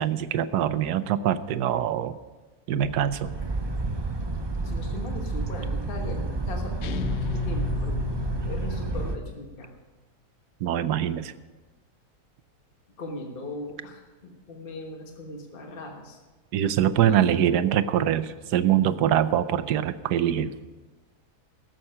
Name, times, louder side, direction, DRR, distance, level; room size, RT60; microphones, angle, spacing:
voice 1, 0.0-2.1 2.7-3.3 10.6-11.3 16.5-20.5, right 10 dB, 90° right, 13 dB, 1.2 m, -24 dB
sound 1, 2.8-9.2, right 3 dB, 40° right, 0.3 m, -30 dB
voice 2, 4.5-8.0 8.3-9.7 13.0-16.2 16.9-17.2, left 2 dB, 35° left, 2 dB, 1.5 m, -38 dB
sound 2, 6.8-9.4, left 7 dB, 70° left, 0.6 m, -33 dB
17.5 x 7.7 x 5.7 m, 1.2 s
omnidirectional pair, 1.7 m